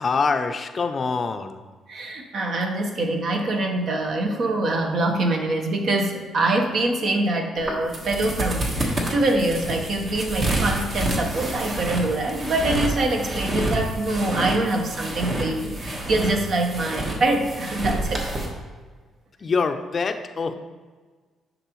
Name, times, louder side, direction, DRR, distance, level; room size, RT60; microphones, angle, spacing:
voice 1, 0.0-1.6 19.4-20.5, left 4 dB, 40° left, 8 dB, 0.5 m, -25 dB
voice 2, 1.9-18.3, right 2 dB, 60° right, 3 dB, 1.0 m, -24 dB
sound 1, 7.6-18.5, right 1 dB, 45° right, 1.3 m, -28 dB
10.0 x 3.9 x 3.1 m, 1.4 s
cardioid pair, 90°, 0 cm